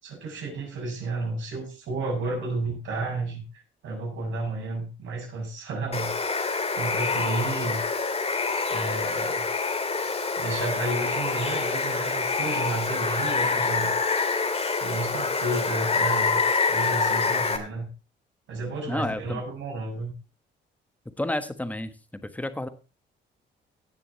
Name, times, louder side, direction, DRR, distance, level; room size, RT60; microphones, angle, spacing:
voice 1, 0.0-3.4 3.8-6.1 6.7-7.8 8.7-9.5 10.4-13.9 14.8-17.9 18.5-20.1, right 2 dB, 75° right, 0 dB, 6.9 m, -32 dB
Water, 5.9-17.6, left 4 dB, 30° left, 2.2 m, -26 dB
voice 2, 18.9-19.4 21.2-21.9 22.2-22.7, left 1 dB, 5° left, 11 dB, 1.3 m, -30 dB
18.0 x 7.0 x 4.1 m, 0.32 s
cardioid pair, 90°, 20 cm